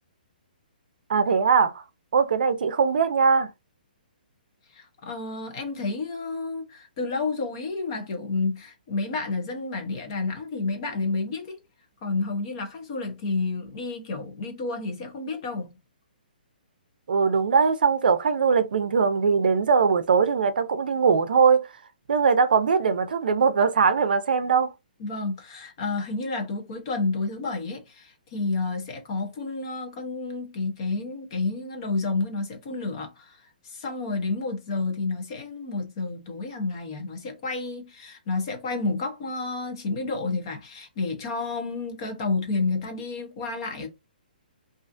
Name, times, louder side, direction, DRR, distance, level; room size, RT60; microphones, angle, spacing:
voice 1, 1.1-1.8 2.1-3.5 17.1-21.7 22.1-24.7, right 5 dB, 70° right, 0.5 m, -21 dB
voice 2, 4.7-11.6 12.0-15.7 25.0-43.9, left 3 dB, 30° left, 0.6 m, -30 dB
2.4 x 2.4 x 2.5 m
hypercardioid pair, 170°, 5 cm